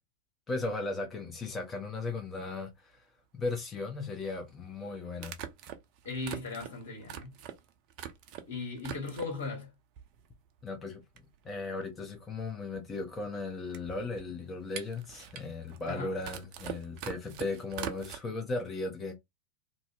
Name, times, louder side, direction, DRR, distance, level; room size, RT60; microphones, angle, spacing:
voice 1, 0.5-3.1 3.3-5.4 10.6-11.0 11.4-19.1, left 3 dB, 20° left, 0.6 m, -36 dB
sound 1, 2.4-2.5 4.2-4.3 5.2-8.5 8.8-9.5 10.0-10.6 10.9-11.0 11.2-18.2, right 9 dB, 40° right, 0.4 m, -43 dB
voice 2, 6.0-7.3 8.5-9.7 15.8-16.1, left 3 dB, 65° left, 1.2 m, -37 dB
2.6 x 2.0 x 2.4 m
figure-of-eight pair, 90°, 0 cm